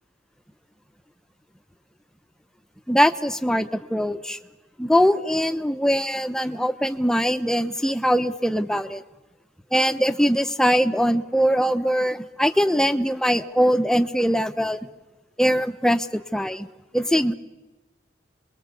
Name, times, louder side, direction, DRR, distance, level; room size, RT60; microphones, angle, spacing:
voice 1, 2.9-4.4 4.8-9.0 9.7-14.8 15.4-16.7 16.9-17.3, equal, 5° left, 10 dB, 0.9 m, -22 dB
28.0 x 22.0 x 8.4 m, 1.1 s
head